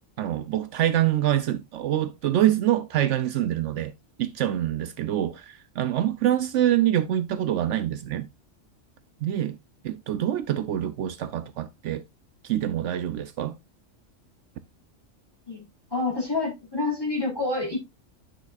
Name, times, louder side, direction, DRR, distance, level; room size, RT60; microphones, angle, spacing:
voice 1, 0.2-3.9 4.2-8.3 9.2-9.6 9.8-12.0 12.4-13.6, right 12 dB, 70° right, 0.9 m, -25 dB
voice 2, 15.9-17.8, left 3 dB, 20° left, 4.0 m, -27 dB
10.5 x 6.1 x 2.4 m
omnidirectional pair, 1.3 m